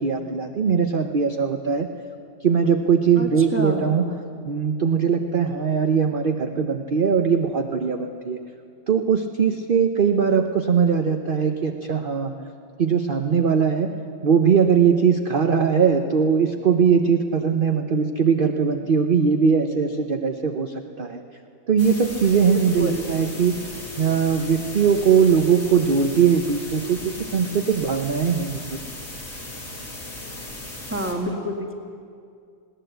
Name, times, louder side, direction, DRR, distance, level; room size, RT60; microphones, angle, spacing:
voice 1, 0.0-1.9 2.4-4.1 4.4-8.4 8.9-12.3 12.8-13.9 14.2-21.2 21.7-23.7 24.0-28.8, right 6 dB, 50° right, 5 dB, 0.6 m, -20 dB
voice 2, 3.2-3.9 22.5-23.2 30.9-31.7, equal, 5° right, 2 dB, 1.8 m, -28 dB
sound 1, 21.8-31.1, left 1 dB, 45° left, 3.6 m, -37 dB
20.5 x 17.5 x 8.0 m, 2.3 s
omnidirectional pair, 2.0 m